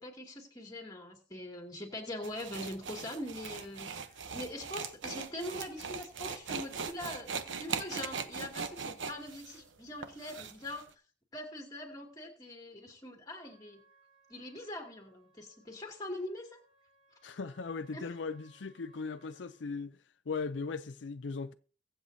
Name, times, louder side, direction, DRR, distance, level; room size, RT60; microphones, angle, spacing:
voice 1, 0.0-10.9 11.3-13.8 14.3-16.6 17.9-18.0, left 1 dB, 20° left, 2.5 m, -43 dB
sound 1, 2.2-10.8, right 5 dB, 90° right, 0.9 m, -40 dB
Trumpet, 13.4-19.7, right 3 dB, 5° right, 5.7 m, -66 dB
voice 2, 17.2-20.0 20.3-21.5, left 4 dB, 80° left, 0.5 m, -38 dB
23.0 x 7.7 x 2.8 m
head